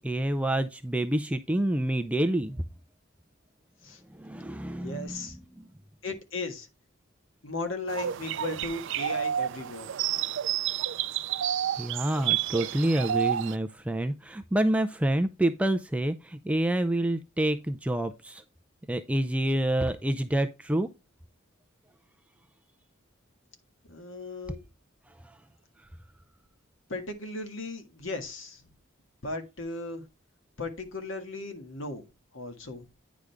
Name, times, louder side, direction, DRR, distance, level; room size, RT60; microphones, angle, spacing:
voice 1, 0.0-2.6 4.1-5.3 5.6-5.7 11.8-18.4 18.9-20.9 25.2-25.4, right 1 dB, 5° right, 0.4 m, -28 dB
voice 2, 4.8-5.4 6.0-6.7 7.4-9.9 23.9-24.6 26.9-28.6 29.2-30.0 30.6-32.0 32.3-32.9, left 2 dB, 75° left, 1.7 m, -36 dB
sound 1, 7.9-13.5, right 10 dB, 65° right, 0.4 m, -30 dB
9.6 x 5.1 x 3.4 m
head